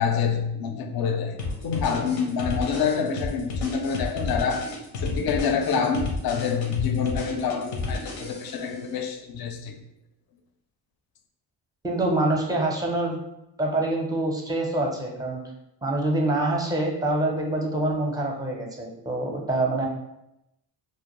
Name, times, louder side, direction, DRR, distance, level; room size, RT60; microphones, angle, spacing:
voice 1, 0.0-9.8, left 6 dB, 50° left, 6 dB, 0.5 m, -27 dB
sound 1, 1.4-8.7, left 3 dB, 90° left, 0.7 m, -32 dB
voice 2, 11.8-13.2 13.6-15.4 15.8-19.9, right 2 dB, 10° right, 0 dB, 0.5 m, -25 dB
2.2 x 2.1 x 2.9 m, 0.86 s
cardioid pair, 75°, 47 cm